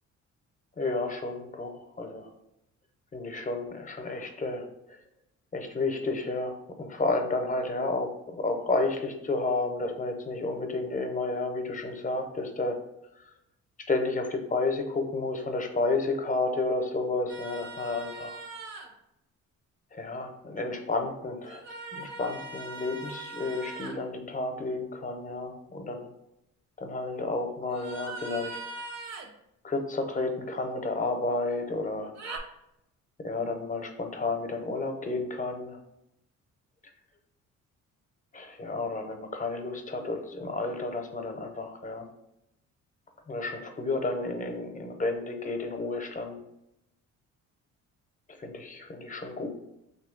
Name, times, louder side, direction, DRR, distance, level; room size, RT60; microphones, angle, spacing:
voice 1, 0.8-2.3 3.1-5.0 5.5-12.8 13.1-13.2 13.9-18.4 19.9-26.1 26.8-28.6 29.6-32.1 33.2-35.8 38.3-42.1 43.3-46.4 48.4-49.5, left 3 dB, 25° left, 5 dB, 0.6 m, -31 dB
sound 1, 17.3-18.9 21.4-23.9 27.7-29.3 32.1-32.4, right 3 dB, 60° right, 0.7 m, -40 dB
3.0 x 2.7 x 3.7 m, 0.83 s
cardioid pair, 90°, 30 cm